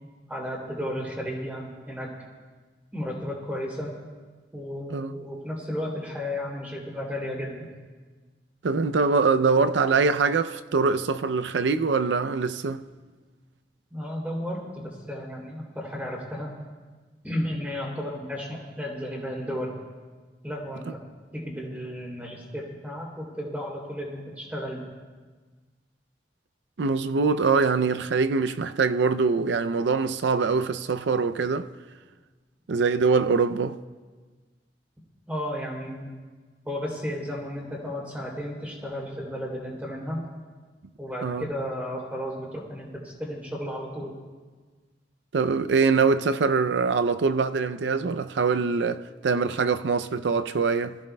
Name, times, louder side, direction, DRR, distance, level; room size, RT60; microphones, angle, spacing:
voice 1, 0.3-2.1 2.9-3.9 4.5-7.7 13.9-16.5 17.2-19.7 20.4-21.0 21.3-24.8 35.3-36.1 36.6-40.2 41.0-44.1, equal, 10° right, 2.9 m, -33 dB
voice 2, 8.6-12.9 26.8-31.7 32.7-33.8 41.2-41.5 45.3-51.0, right 4 dB, 80° right, 0.5 m, -23 dB
23.0 x 14.5 x 2.2 m
head